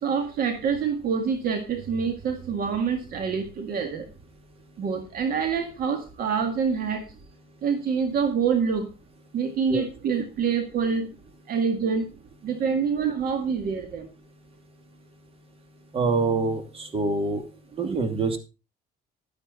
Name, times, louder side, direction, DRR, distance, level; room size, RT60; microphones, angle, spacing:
voice 1, 0.0-4.1 4.8-7.0 7.6-8.9 9.3-11.1 11.5-12.1 12.4-14.1, right 6 dB, 60° right, 6 dB, 1.9 m, -26 dB
voice 2, 15.9-17.4 17.8-18.4, right 3 dB, 35° right, 7 dB, 2.7 m, -25 dB
11.5 x 10.0 x 4.2 m, 0.30 s
cardioid pair, 110°, 17 cm